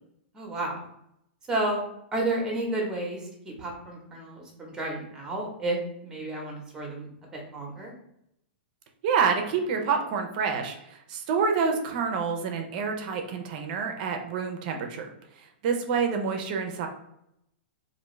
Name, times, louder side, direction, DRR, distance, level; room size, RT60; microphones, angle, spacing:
voice 1, 0.3-0.8 1.5-1.8 2.1-5.8 6.0-7.9, right 2 dB, 10° right, -1 dB, 0.8 m, -31 dB
voice 2, 9.0-15.1 15.4-16.9, right 5 dB, 45° right, 4 dB, 0.4 m, -28 dB
2.5 x 2.2 x 3.0 m, 0.78 s
hypercardioid pair, 145°, 6 cm